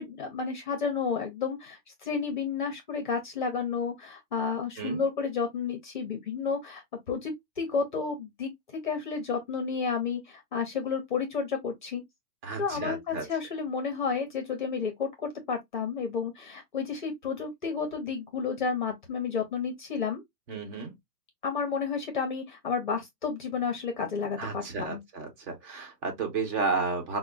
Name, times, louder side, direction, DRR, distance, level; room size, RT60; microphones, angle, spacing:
voice 1, 0.0-6.8 7.1-8.5 8.8-12.0 12.6-20.2 21.4-25.0, left 5 dB, 30° left, 0.6 m, -31 dB
voice 2, 12.4-13.2 20.5-20.9 24.4-27.2, right 4 dB, 45° right, 1.2 m, -32 dB
4.9 x 2.1 x 2.3 m
hypercardioid pair, 160°, 49 cm